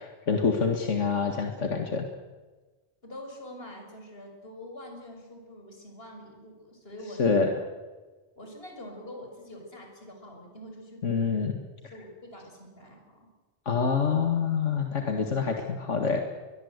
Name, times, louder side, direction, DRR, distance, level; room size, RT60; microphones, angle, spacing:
voice 1, 0.0-2.1 7.2-7.5 11.0-11.6 13.7-16.2, left 5 dB, 90° left, 4 dB, 2.2 m, -26 dB
voice 2, 3.0-7.2 8.4-11.3 11.9-13.3, left 1 dB, 55° left, 2 dB, 6.3 m, -45 dB
22.5 x 22.5 x 8.1 m, 1.3 s
omnidirectional pair, 1.2 m